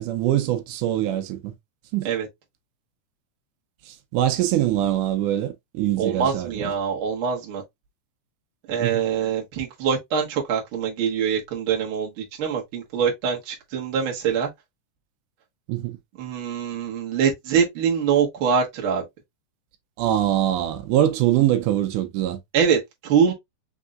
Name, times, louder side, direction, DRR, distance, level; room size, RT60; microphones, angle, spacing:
voice 1, 0.0-1.5 1.9-2.1 3.9-6.7 8.8-9.0 15.7-16.0 20.0-22.4, right 12 dB, 80° right, 2.1 m, -23 dB
voice 2, 6.0-7.6 8.7-14.5 16.2-19.0 22.5-23.3, right 7 dB, 50° right, 1.7 m, -24 dB
5.2 x 3.6 x 2.3 m
omnidirectional pair, 3.6 m